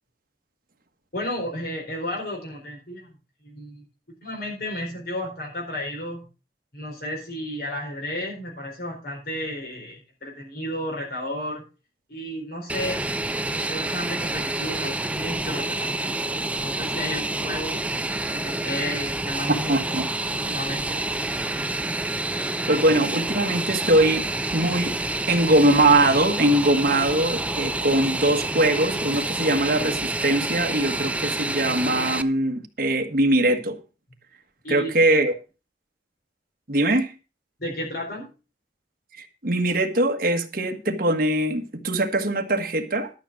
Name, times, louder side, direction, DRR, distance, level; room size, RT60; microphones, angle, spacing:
voice 1, 1.1-3.1 3.4-3.8 4.2-6.2 6.7-11.6 12.1-13.0 13.5-17.8 18.3-19.7 20.3-21.0 34.6-35.0 37.6-38.3, left 1 dB, 60° left, -1 dB, 4.3 m, -33 dB
Fixed-wing aircraft airplane, 12.7-32.2, right 2 dB, 10° right, 0.5 m, -28 dB
voice 2, 19.5-20.1 22.7-24.2 24.5-24.9 25.3-33.8 34.7-35.3 36.7-37.1 39.1-43.1, right 1 dB, 50° right, 4 dB, 1.5 m, -22 dB
12.5 x 6.3 x 6.1 m, 0.32 s
head